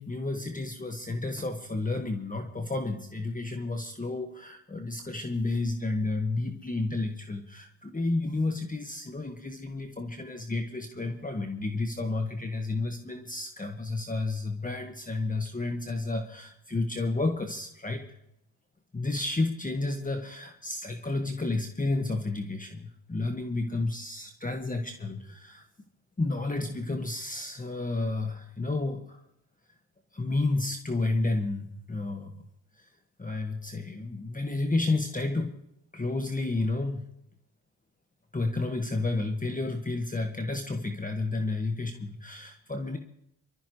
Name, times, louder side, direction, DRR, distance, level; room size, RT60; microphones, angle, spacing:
voice 1, 0.0-18.1 18.9-25.6 26.2-29.2 30.1-32.5 32.8-32.9 33.2-35.6 35.9-37.1 38.3-43.0, left 2 dB, 15° left, 4 dB, 1.7 m, -31 dB
24.5 x 13.5 x 3.2 m, 0.77 s
supercardioid pair, 65°, 47 cm